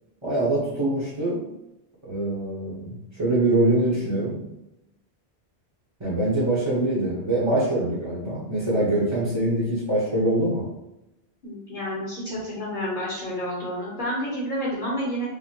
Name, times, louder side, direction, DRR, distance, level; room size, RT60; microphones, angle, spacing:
voice 1, 0.2-1.4 2.0-4.4 6.0-10.6, right 1 dB, 30° right, -9 dB, 0.9 m, -24 dB
voice 2, 11.4-15.3, equal, 50° left, -7 dB, 1.2 m, -29 dB
5.0 x 2.1 x 2.9 m, 0.92 s
omnidirectional pair, 1.1 m